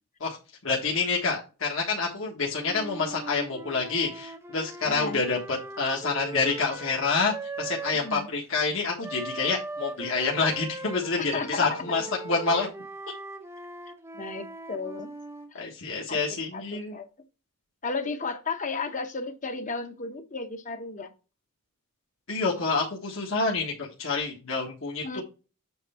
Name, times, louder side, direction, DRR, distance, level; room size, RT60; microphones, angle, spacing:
voice 1, 0.6-12.7 15.5-17.0 22.3-25.2, left 4 dB, 65° left, 1.5 m, -28 dB
Wind instrument woodwind instrument, 2.6-8.3 9.0-15.5, right 2 dB, 10° right, 0.7 m, -40 dB
voice 2, 4.8-5.2 5.9-6.0 7.9-8.3 11.3-11.8 14.1-15.1 15.5-15.7 16.1-16.2 16.5-17.1 17.8-21.1 25.0-25.2, left 4 dB, 35° left, 0.9 m, -34 dB
7.9 x 3.3 x 5.6 m
head